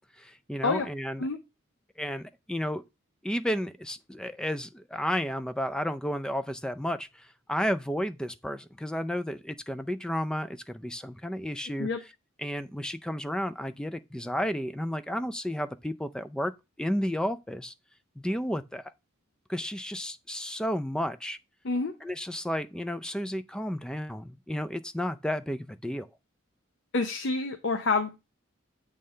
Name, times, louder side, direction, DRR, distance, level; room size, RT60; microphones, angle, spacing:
voice 1, 0.2-1.3 2.0-2.8 3.2-11.9 12.4-16.5 16.8-17.7 18.2-18.8 19.5-21.4 22.0-26.1, equal, 5° left, 0.3 m, -32 dB
voice 2, 26.9-28.2, left 3 dB, 60° left, 0.7 m, -28 dB
7.6 x 3.3 x 5.4 m
head